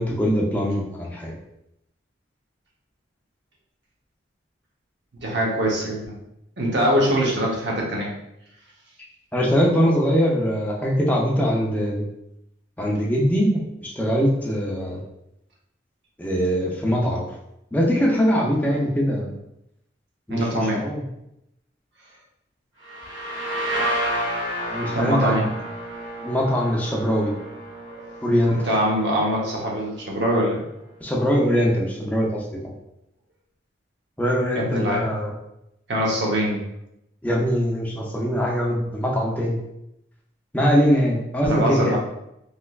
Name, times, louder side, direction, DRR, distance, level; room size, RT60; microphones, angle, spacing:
voice 1, 0.0-1.3 9.3-12.0 12.8-15.0 16.2-17.2 17.7-19.3 20.3-21.0 24.7-25.5 26.2-27.3 28.2-28.7 31.0-32.4 34.2-35.3 37.2-39.7 40.5-42.0, equal, 10° left, -3 dB, 0.5 m, -22 dB
voice 2, 5.2-6.1 6.6-8.1 20.3-20.8 24.9-25.4 27.9-28.1 28.5-30.6 34.5-35.1 35.9-36.6 41.4-42.0, equal, 60° right, -3 dB, 0.8 m, -23 dB
sound 1, 22.8-30.4, equal, 80° right, 1.2 m, -31 dB
3.3 x 2.9 x 2.3 m, 0.83 s
head